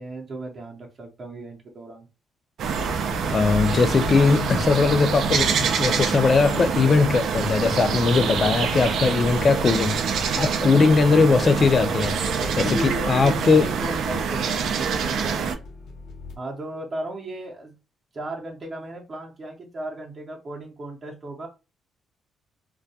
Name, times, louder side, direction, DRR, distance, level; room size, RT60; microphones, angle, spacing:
voice 1, 0.0-2.1 12.4-15.4 16.4-17.8 18.1-21.5, right 2 dB, 40° right, 0.7 m, -35 dB
sound 1, 2.6-15.5, right 6 dB, 70° right, 0.4 m, -25 dB
sound 2, 3.3-16.4, left 4 dB, 85° left, 0.7 m, -41 dB
voice 2, 3.3-10.0 10.4-12.2 12.6-13.7, left 4 dB, 40° left, 0.4 m, -20 dB
2.2 x 2.2 x 2.7 m
cardioid pair, 90°, 0 cm